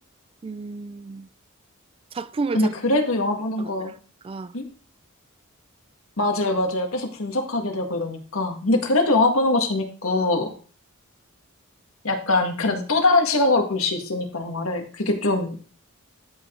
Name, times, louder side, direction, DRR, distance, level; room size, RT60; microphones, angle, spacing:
voice 1, 0.4-1.3 2.1-2.7 3.6-3.9 4.2-4.5, right 4 dB, 25° right, 0.3 m, -31 dB
voice 2, 2.5-3.9 4.5-4.6 6.2-10.5 12.0-15.5, left 2 dB, 70° left, 1.7 m, -23 dB
12.5 x 5.0 x 3.8 m
head